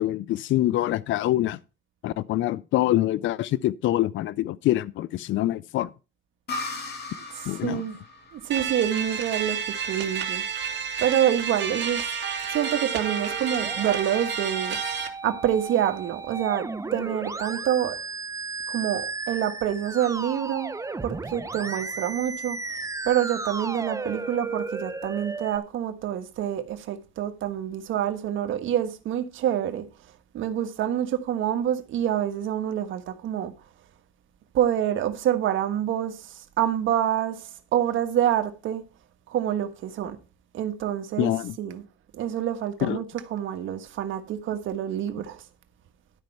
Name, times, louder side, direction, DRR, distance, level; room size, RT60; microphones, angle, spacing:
voice 1, 0.0-1.6 2.0-5.9 7.5-7.8 41.2-41.6 42.8-43.0, left 14 dB, 75° left, 0.5 m, -25 dB
sound 1, 6.5-10.0, left 3 dB, 55° left, 2.5 m, -38 dB
voice 2, 7.3-8.0 8.3-9.6 9.8-10.4 11.0-12.1 12.5-14.8 15.2-18.0 18.7-20.7 21.0-22.8 23.0-29.9 30.3-33.5 34.5-38.8 39.3-40.2 40.5-41.8 42.1-43.0 43.3-45.4, right 10 dB, 80° right, 1.5 m, -27 dB
sound 2, 8.5-15.1, right 7 dB, 65° right, 2.5 m, -30 dB
Musical instrument, 12.6-25.6, right 3 dB, 15° right, 0.8 m, -35 dB
12.5 x 5.3 x 5.8 m
cardioid pair, 90°, 20 cm